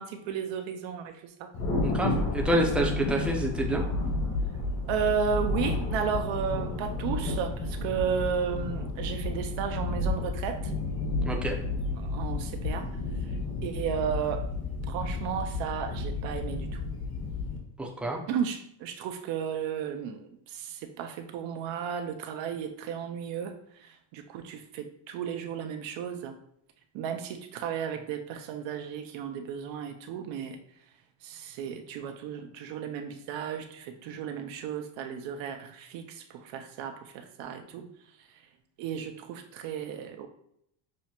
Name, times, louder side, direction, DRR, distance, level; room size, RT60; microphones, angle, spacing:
voice 1, 0.0-1.5 4.9-10.7 11.9-12.9 13.6-14.5 14.9-16.8 18.3-26.3 26.9-30.6 31.2-37.9 38.8-40.3, right 7 dB, 70° right, 6 dB, 0.5 m, -34 dB
Thunder, 1.5-17.6, left 3 dB, 45° left, 1.1 m, -31 dB
voice 2, 1.8-3.8 11.2-11.6 17.8-18.2, right 1 dB, ahead, 0 dB, 0.5 m, -28 dB
6.2 x 2.1 x 2.8 m, 0.74 s
cardioid pair, 120°, 48 cm